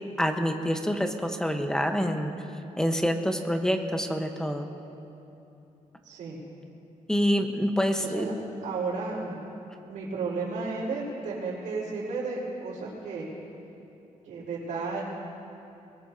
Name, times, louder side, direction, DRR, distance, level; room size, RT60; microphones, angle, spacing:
voice 1, 0.2-2.3 2.8-4.7 7.1-8.3, equal, 5° left, 5 dB, 1.2 m, -26 dB
voice 2, 6.0-6.4 8.0-8.3 8.6-9.4 9.9-13.3 14.2-15.0, right 4 dB, 85° right, -10 dB, 4.6 m, -33 dB
23.5 x 20.0 x 2.9 m, 2.9 s
cardioid pair, 110°, 13 cm